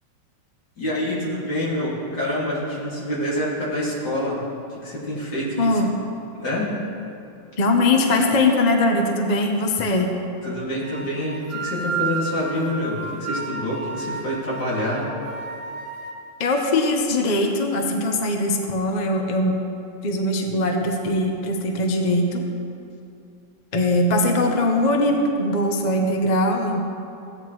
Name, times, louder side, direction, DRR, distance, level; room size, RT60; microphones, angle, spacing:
voice 1, 0.8-5.8 6.4-6.8 10.4-15.1, left 1 dB, 65° left, -6 dB, 3.0 m, -27 dB
voice 2, 5.6-5.9 7.6-10.1 16.4-19.6 20.0-22.4 23.7-26.8, left 1 dB, 40° left, 3 dB, 0.6 m, -21 dB
sound 1, 10.8-16.1, right 4 dB, 20° right, 1.1 m, -32 dB
16.0 x 9.0 x 3.1 m, 2.6 s
omnidirectional pair, 1.9 m